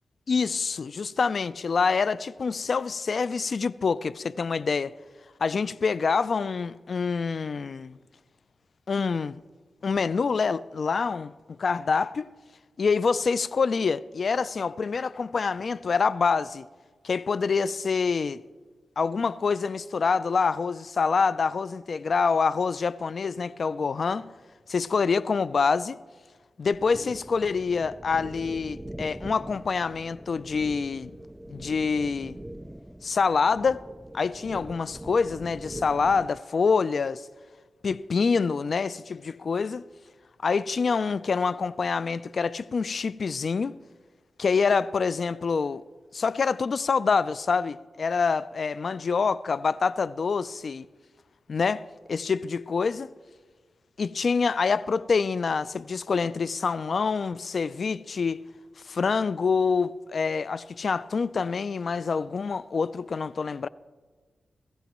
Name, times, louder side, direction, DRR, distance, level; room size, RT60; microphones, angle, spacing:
voice 1, 0.3-4.9 5.4-8.0 8.9-9.4 9.8-11.3 11.6-12.3 12.8-16.7 17.0-18.4 19.0-24.3 24.7-26.0 26.6-31.1 31.5-32.4 33.0-33.8 34.1-37.3 37.8-39.8 40.4-43.8 44.4-45.8 46.1-50.9 51.5-53.2 54.0-58.4 58.9-63.7, left 5 dB, 65° left, 0.4 m, -26 dB
sound 1, 26.7-36.4, right 1 dB, 10° right, 0.4 m, -42 dB
22.5 x 15.0 x 3.1 m
cardioid pair, 70°, 0 cm